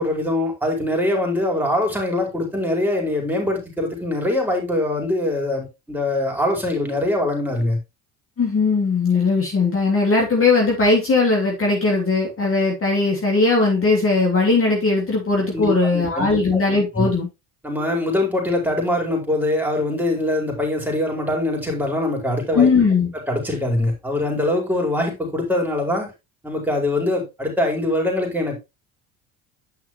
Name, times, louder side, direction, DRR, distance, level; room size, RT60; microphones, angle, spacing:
voice 1, 0.0-7.8 15.5-16.6 16.9-17.1 17.6-22.7 23.3-26.1 26.4-28.6, left 1 dB, 5° right, 4.8 m, -23 dB
voice 2, 8.4-17.3 22.5-23.1, left 3 dB, 30° left, 3.1 m, -19 dB
10.0 x 5.8 x 3.1 m
hypercardioid pair, 70°, 41 cm